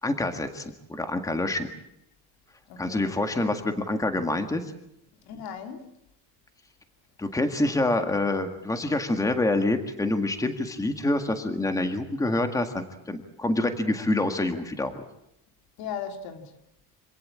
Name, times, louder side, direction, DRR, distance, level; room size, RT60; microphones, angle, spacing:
voice 1, 0.0-1.7 2.8-4.6 7.2-15.0, left 2 dB, 10° left, 1.8 m, -26 dB
voice 2, 2.7-3.3 5.2-5.9 15.8-16.5, left 7 dB, 75° left, 3.0 m, -37 dB
26.5 x 17.5 x 8.7 m
cardioid pair, 160°, 37 cm